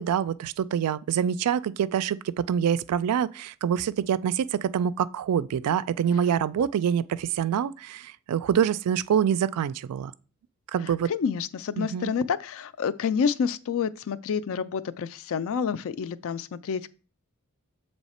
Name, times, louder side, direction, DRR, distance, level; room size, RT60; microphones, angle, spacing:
voice 1, 0.0-10.1 10.7-11.1 11.8-12.1, right 8 dB, 80° right, 0.3 m, -26 dB
voice 2, 10.8-16.9, left 6 dB, 65° left, 0.4 m, -29 dB
7.2 x 3.2 x 4.2 m
head